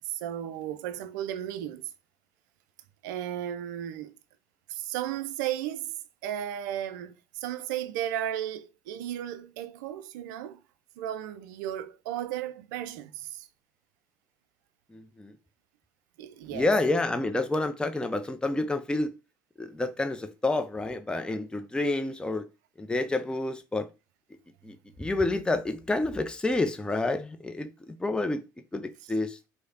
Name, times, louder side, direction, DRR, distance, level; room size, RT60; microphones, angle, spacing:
voice 1, 0.1-1.9 3.0-4.1 4.7-6.0 6.2-10.6 11.0-13.5 16.2-16.7, right 11 dB, 70° right, 0.4 m, -34 dB
voice 2, 14.9-15.4 16.5-19.1 19.6-22.5 22.8-23.9 24.6-28.4 28.7-29.4, left 2 dB, 10° left, 0.5 m, -29 dB
4.7 x 2.1 x 2.7 m
figure-of-eight pair, 55°, 10 cm